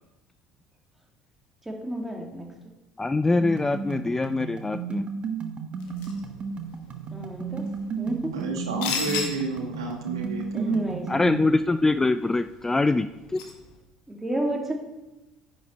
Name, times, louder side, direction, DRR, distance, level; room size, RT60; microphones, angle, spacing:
voice 1, 1.6-2.5 7.1-7.6 8.0-8.2 10.5-11.3 14.1-14.7, right 1 dB, 10° right, 0 dB, 2.3 m, -31 dB
voice 2, 3.0-5.1 11.1-13.1 13.3-13.5, left 2 dB, 15° left, 11 dB, 0.4 m, -23 dB
sound 1, 3.4-11.4, right 5 dB, 40° right, 1.2 m, -34 dB
sound 2, 5.8-13.8, left 6 dB, 65° left, 1.6 m, -39 dB
voice 3, 8.3-10.8, right 3 dB, 75° right, 2 dB, 1.4 m, -30 dB
10.0 x 6.5 x 4.4 m, 1.0 s
figure-of-eight pair, 60°, 3 cm